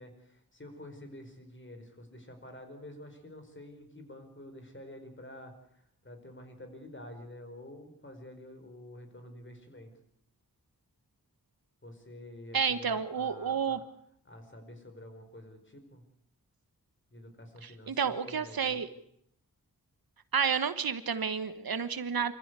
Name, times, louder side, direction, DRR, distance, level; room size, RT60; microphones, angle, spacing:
voice 1, 0.0-9.9 11.8-13.8 14.2-16.0 17.1-18.9, left 1 dB, 30° left, 6 dB, 4.9 m, -49 dB
voice 2, 12.5-13.8 17.6-18.9 20.3-22.3, right 6 dB, 75° right, 12 dB, 1.3 m, -30 dB
25.0 x 15.0 x 8.3 m, 0.70 s
wide cardioid pair, 75°, 36 cm